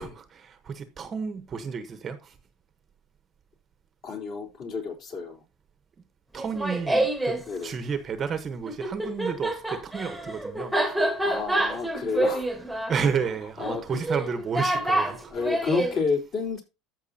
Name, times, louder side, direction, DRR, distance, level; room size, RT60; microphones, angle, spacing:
voice 1, 0.0-2.4 6.3-11.0 12.9-15.3, right 6 dB, 25° right, 1.0 m, -31 dB
voice 2, 4.0-5.4 7.5-7.8 11.2-12.5 13.4-14.0 15.3-16.6, left 4 dB, 40° left, 3.8 m, -30 dB
Laughter, 6.4-7.4 8.7-16.0, right 1 dB, ahead, 1.5 m, -27 dB
14.0 x 6.1 x 2.8 m
cardioid pair, 150°, 0 cm